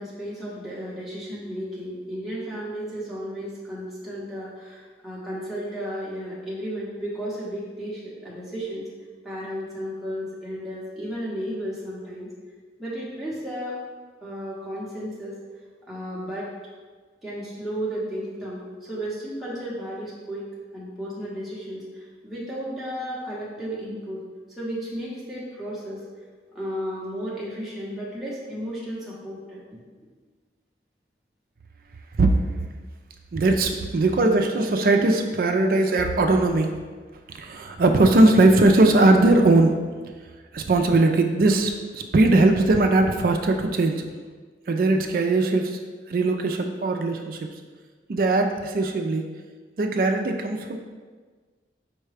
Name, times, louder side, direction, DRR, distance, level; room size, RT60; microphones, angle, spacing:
voice 1, 0.0-8.9 9.2-12.3 12.8-13.8 14.2-15.4 15.9-16.5 17.2-24.3 24.6-26.1 26.5-29.6, equal, ahead, -8 dB, 0.7 m, -33 dB
voice 2, 33.3-36.7 37.4-39.8 40.5-44.0 44.7-45.8 46.1-47.5 48.1-49.3 49.8-50.8, right 2 dB, 50° right, 4 dB, 0.4 m, -20 dB
4.7 x 2.2 x 4.8 m, 1.4 s
head